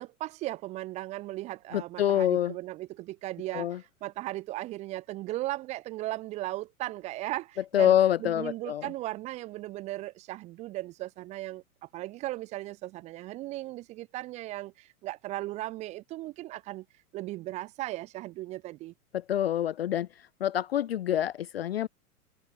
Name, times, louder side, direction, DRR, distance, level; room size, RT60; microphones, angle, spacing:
voice 1, 0.0-16.9 17.1-18.9, right 17 dB, 15° right, 0.6 m, -37 dB
voice 2, 1.7-2.5 3.5-3.8 7.7-8.9 19.1-20.1 20.4-21.9, left 11 dB, 45° left, 0.5 m, -26 dB
figure-of-eight pair, 105°, 45 cm